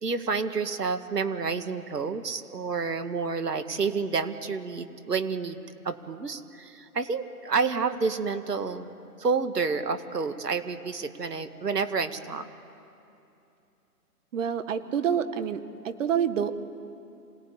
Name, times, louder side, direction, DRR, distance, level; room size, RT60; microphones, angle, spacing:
voice 1, 0.0-8.9 9.2-12.5, right 5 dB, 85° right, 10 dB, 2.0 m, -29 dB
voice 2, 14.3-16.5, right 8 dB, 55° right, 11 dB, 1.9 m, -27 dB
26.5 x 18.5 x 10.0 m, 2.8 s
hypercardioid pair, 135°, 46 cm